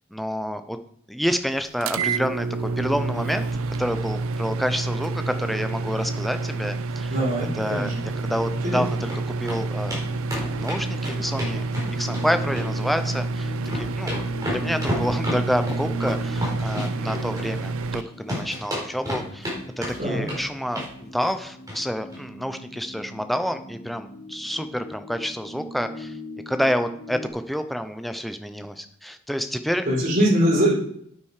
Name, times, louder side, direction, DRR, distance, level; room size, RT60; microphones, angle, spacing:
voice 1, 0.1-0.8 1.1-7.1 7.5-7.9 8.2-9.1 9.4-10.0 10.3-14.1 14.5-19.5 19.8-26.2 26.5-29.9, equal, ahead, 8 dB, 0.5 m, -28 dB
sound 1, 1.8-18.0, right 3 dB, 70° right, 0.5 m, -28 dB
voice 2, 7.1-7.9 8.6-8.8 20.0-20.2 29.8-30.7, equal, 40° right, -5 dB, 4.5 m, -22 dB
sound 2, 8.6-9.2 9.5-9.6 9.9-10.0 10.3-12.3 12.6-13.2 13.5-18.0 18.3-19.6 19.8-20.4 20.7-20.9 21.2-21.4 21.7-21.8 22.1-22.2, left 1 dB, 15° right, 4.3 m, -31 dB
sound 3, 9.9-27.3, equal, 85° left, 3.7 m, -40 dB
8.9 x 8.7 x 4.9 m, 0.68 s
head